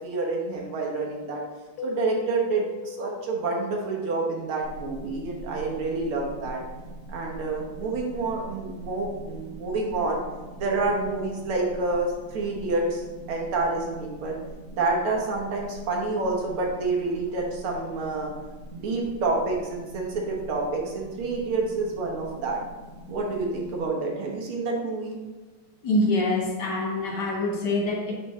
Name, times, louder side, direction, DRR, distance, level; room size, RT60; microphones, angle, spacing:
voice 1, 0.0-1.4 1.8-6.6 7.1-10.2 10.6-13.0 13.3-14.4 14.7-18.3 18.7-22.6 23.1-25.1, right 3 dB, 85° right, -1 dB, 2.1 m, -28 dB
Keyboard (musical), 1.8-4.3, left 7 dB, 80° left, 1.4 m, -38 dB
sound 1, 4.6-23.9, right 1 dB, 65° right, 2.0 m, -43 dB
voice 2, 25.8-28.1, left 2 dB, 60° left, -1 dB, 1.5 m, -25 dB
9.7 x 3.3 x 3.6 m, 1.2 s
omnidirectional pair, 2.3 m